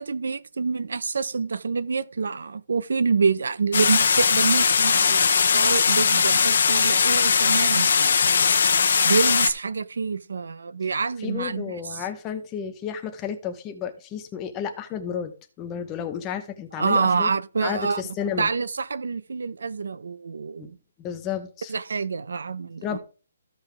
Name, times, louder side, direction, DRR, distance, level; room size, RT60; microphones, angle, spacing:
voice 1, 0.0-5.2 5.5-8.2 9.0-12.0 16.8-18.0 18.4-20.8 21.7-23.0, right 5 dB, 80° right, 0.8 m, -26 dB
sound 1, 3.7-9.5, left 6 dB, 55° left, 1.0 m, -20 dB
voice 2, 11.2-15.3 15.6-17.3 17.6-18.5 20.6-20.7 21.0-21.7 22.8-23.0, left 8 dB, 10° left, 0.8 m, -32 dB
15.0 x 5.6 x 3.4 m
hypercardioid pair, 180°, 0 cm